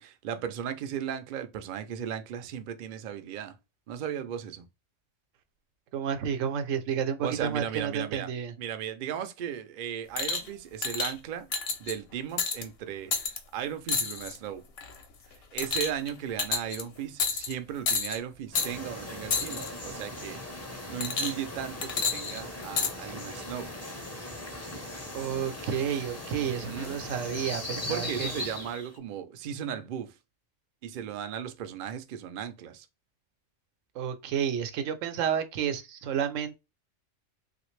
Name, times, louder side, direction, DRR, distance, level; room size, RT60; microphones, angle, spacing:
voice 1, 0.0-3.6 3.9-4.7 7.2-8.3 8.6-11.5 11.8-14.6 15.5-20.4 20.9-23.7 26.4-27.0 27.7-30.1 30.8-32.9, right 9 dB, 65° right, 0.5 m, -36 dB
voice 2, 5.9-8.5 25.1-28.3 33.9-36.6, right 8 dB, 85° right, 1.0 m, -31 dB
sound 1, 10.2-10.5 10.8-11.1 11.5-11.9 12.4-12.6 13.1-13.4 13.9-14.4 14.8-15.0 15.6-16.1 16.4-16.8 17.2-17.5 17.9-18.2 18.6-18.7 19.3-19.7 21.0-21.5 21.8-22.9 23.7-23.8, left 5 dB, 60° left, 0.8 m, -29 dB
sound 2, 18.5-29.0, left 1 dB, 20° left, 0.5 m, -39 dB
3.1 x 2.4 x 3.1 m
omnidirectional pair, 1.3 m